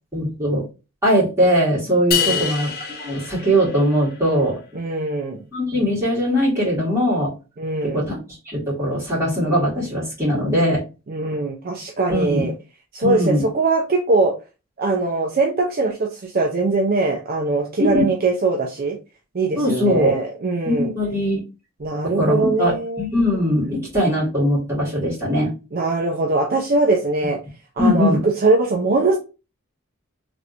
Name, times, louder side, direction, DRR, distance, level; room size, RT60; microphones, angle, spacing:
voice 1, 0.1-0.6 1.0-2.7 3.0-4.6 5.5-7.3 7.9-8.2 8.5-10.8 12.1-12.5 13.0-13.4 17.8-18.1 19.6-20.1 20.7-21.4 22.0-25.5 27.8-28.2, equal, 10° right, -7 dB, 1.9 m, -20 dB
sound 1, 2.1-4.4, left 7 dB, 45° left, 0.5 m, -26 dB
voice 2, 2.1-2.5 4.7-5.4 7.6-8.0 11.1-12.5 12.9-14.3 14.8-19.0 19.3-20.9 21.8-23.0 25.7-27.4 27.8-29.2, right 3 dB, 40° right, 1 dB, 0.5 m, -21 dB
3.2 x 2.5 x 2.8 m, 0.31 s
head